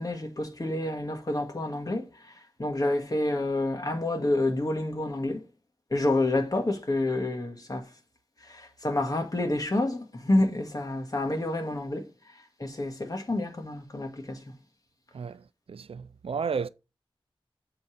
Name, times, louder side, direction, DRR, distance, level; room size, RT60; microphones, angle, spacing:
voice 1, 0.0-2.1 2.6-5.4 5.9-7.9 8.5-12.0 12.6-14.4, left 2 dB, 40° left, 1.9 m, -28 dB
voice 2, 15.1-16.7, right 6 dB, 85° right, 0.5 m, -33 dB
7.8 x 4.1 x 5.0 m
wide cardioid pair, 60°, 9 cm